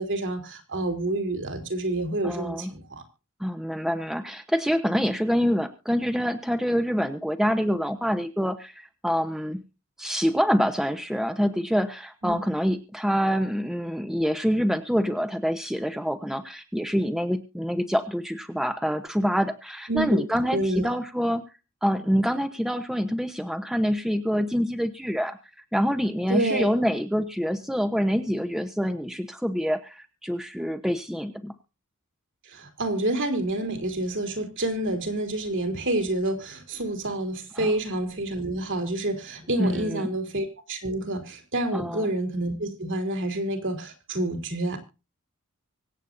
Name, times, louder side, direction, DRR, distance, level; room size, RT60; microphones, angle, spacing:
voice 1, 0.0-3.0 12.2-12.3 19.9-20.2 20.5-20.9 26.3-26.7 32.5-44.8, right 1 dB, 60° right, 5 dB, 3.8 m, -28 dB
voice 2, 2.2-2.7 3.4-9.6 10.0-21.4 21.8-25.4 25.7-31.5 37.6-37.7 39.6-40.1 41.7-42.1, equal, ahead, 7 dB, 1.0 m, -26 dB
25.0 x 8.3 x 2.6 m, 0.31 s
head